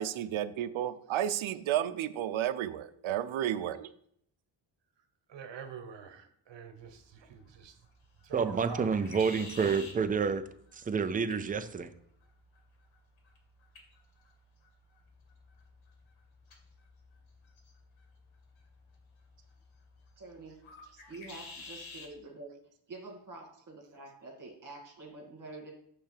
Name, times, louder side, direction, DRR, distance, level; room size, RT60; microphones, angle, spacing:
voice 1, 0.0-3.9, right 11 dB, 85° right, 13 dB, 0.7 m, -32 dB
voice 2, 5.3-7.7 8.2-9.2 9.6-9.7, right 7 dB, 65° right, 7 dB, 1.2 m, -46 dB
sound 1, 6.8-22.1, left 3 dB, 80° left, 1.9 m, -53 dB
voice 3, 8.3-10.4 10.7-11.9, right 5 dB, 20° right, 10 dB, 0.4 m, -29 dB
voice 4, 20.2-20.6 21.1-22.5 22.9-25.7, right 2 dB, 40° right, 0 dB, 2.4 m, -47 dB
8.6 x 3.4 x 6.7 m, 0.68 s
wide cardioid pair, 165°, 46 cm